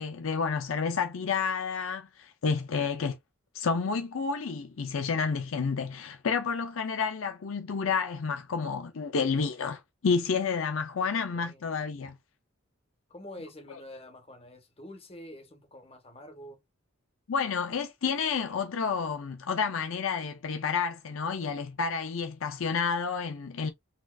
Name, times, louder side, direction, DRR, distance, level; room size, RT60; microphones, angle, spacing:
voice 1, 0.0-3.2 3.5-12.2 17.3-23.7, left 5 dB, 70° left, 0.5 m, -30 dB
voice 2, 11.3-11.6 13.1-16.6, left 1 dB, 25° left, 1.1 m, -47 dB
4.2 x 2.7 x 2.3 m
head